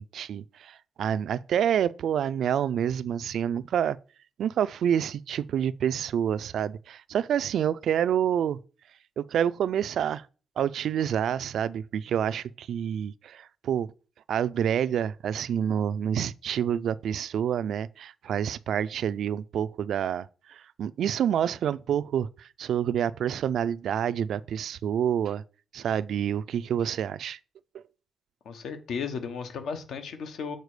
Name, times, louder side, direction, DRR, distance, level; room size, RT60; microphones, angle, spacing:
voice 1, 0.0-4.0 4.4-8.6 9.2-10.2 10.6-13.9 14.3-25.4 25.7-27.4 27.7-27.8, right 9 dB, 70° right, 0.3 m, -28 dB
voice 2, 28.4-30.6, left 6 dB, 75° left, 1.1 m, -34 dB
6.6 x 4.4 x 4.8 m
wide cardioid pair, 160°, 0 cm